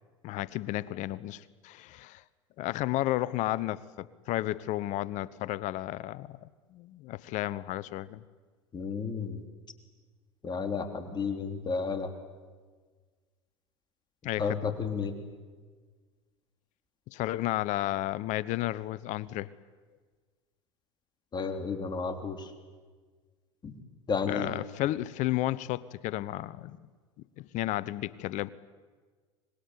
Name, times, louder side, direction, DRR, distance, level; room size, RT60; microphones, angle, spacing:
voice 1, 0.2-2.2 2.6-6.4 6.7-8.2 14.2-14.6 17.1-19.5 24.2-26.8 27.4-28.5, left 16 dB, 55° left, 19 dB, 0.9 m, -32 dB
voice 2, 8.7-9.4 10.4-12.1 14.4-15.1 21.3-22.5 23.6-23.7 24.1-24.5, left 5 dB, 30° left, 7 dB, 3.4 m, -32 dB
25.0 x 21.0 x 9.6 m, 1.5 s
hypercardioid pair, 85°, 15 cm